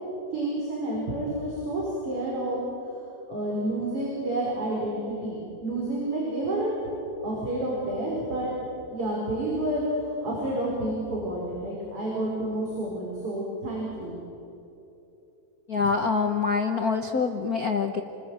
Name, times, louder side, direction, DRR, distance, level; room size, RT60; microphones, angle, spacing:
voice 1, 0.3-2.6 3.3-6.8 7.2-8.5 8.9-14.1, right 1 dB, 50° right, -4 dB, 6.1 m, -29 dB
voice 2, 15.7-18.0, left 5 dB, 55° left, 5 dB, 1.1 m, -25 dB
29.5 x 20.5 x 9.0 m, 2.9 s
omnidirectional pair, 3.3 m